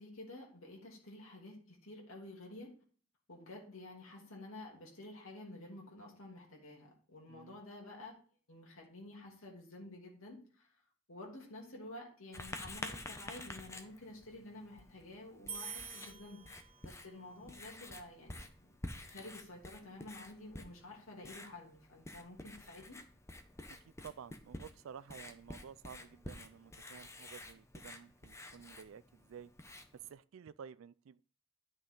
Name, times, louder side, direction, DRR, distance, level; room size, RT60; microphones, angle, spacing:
voice 1, 0.0-2.7 3.3-8.1 8.5-10.7 11.1-16.4 16.8-18.7 19.0-23.0, left 2 dB, 90° left, 2.9 m, -51 dB
voice 2, 7.3-7.6 23.7-29.5 30.0-31.2, right 7 dB, 80° right, 0.4 m, -52 dB
Writing, 12.3-30.1, left 1 dB, 15° left, 0.8 m, -50 dB
sound 1, 15.5-17.1, right 7 dB, 30° right, 1.2 m, -47 dB
10.5 x 6.3 x 3.8 m
head